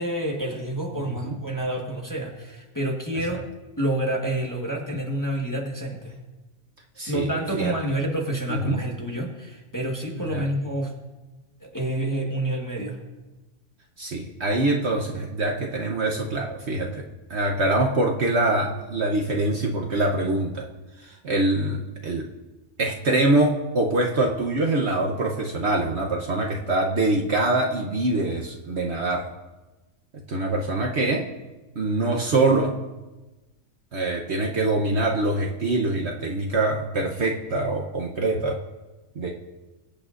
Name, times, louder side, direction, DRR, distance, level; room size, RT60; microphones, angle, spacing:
voice 1, 0.0-3.4 3.8-6.2 7.1-10.9 11.6-13.0, right 1 dB, 15° left, -1 dB, 1.3 m, -28 dB
voice 2, 0.9-1.4 7.0-7.7 8.5-8.8 10.2-10.4 14.0-17.0 17.3-20.7 21.0-22.2 22.8-29.3 30.3-31.3 31.7-32.8 33.9-38.6 39.2-39.3, right 2 dB, 55° right, 1 dB, 1.0 m, -24 dB
22.0 x 8.5 x 2.5 m, 1.1 s
omnidirectional pair, 1.5 m